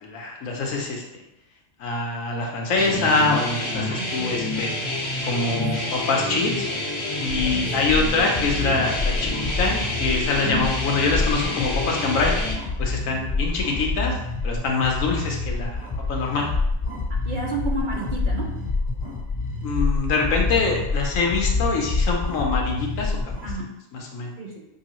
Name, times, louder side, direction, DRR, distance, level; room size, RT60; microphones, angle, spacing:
voice 1, 0.0-1.2 1.8-4.8 5.2-6.7 7.2-14.2 14.4-16.5 19.6-23.3 23.9-24.3, left 3 dB, 80° left, 0 dB, 1.2 m, -25 dB
sound 1, 2.8-12.5, left 1 dB, 55° left, 1.3 m, -28 dB
voice 2, 3.8-4.4 5.4-5.9 7.4-8.1 10.4-10.7 17.1-18.5 23.4-23.7 24.4-24.7, right 2 dB, 45° right, -2 dB, 0.7 m, -33 dB
sound 2, 7.2-23.6, left 3 dB, 5° left, 1.5 m, -27 dB
5.9 x 2.7 x 3.0 m, 0.86 s
omnidirectional pair, 1.4 m